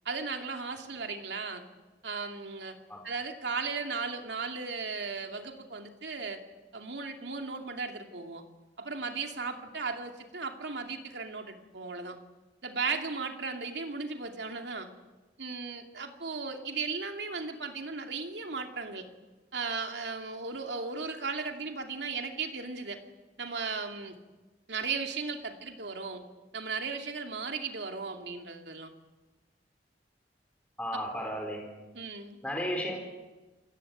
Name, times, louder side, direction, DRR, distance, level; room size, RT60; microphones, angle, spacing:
voice 1, 0.0-1.6 2.0-2.8 3.0-6.4 6.7-8.4 8.8-12.2 12.6-14.9 15.4-19.0 19.5-23.0 23.4-24.2 24.7-26.2 26.5-28.9 31.1-31.2 31.9-32.4, right 4 dB, 85° right, 4 dB, 2.6 m, -36 dB
voice 2, 30.8-31.7 32.4-33.0, equal, 10° left, 1 dB, 4.2 m, -33 dB
27.5 x 16.5 x 9.0 m, 1.2 s
head